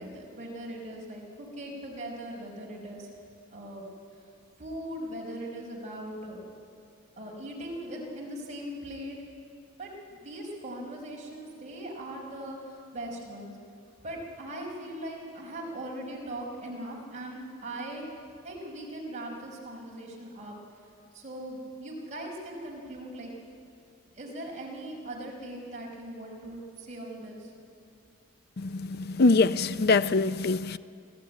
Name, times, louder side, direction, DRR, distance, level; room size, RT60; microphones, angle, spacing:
voice 1, 0.0-3.1 3.5-3.8 4.6-6.4 7.2-9.2 9.8-13.6 14.0-18.1 18.4-20.6 21.1-23.3 24.2-27.5, right 1 dB, 30° right, 4.8 m, -40 dB
voice 2, 28.6-30.8, left 3 dB, 45° left, 0.5 m, -24 dB
25.0 x 15.5 x 9.4 m
head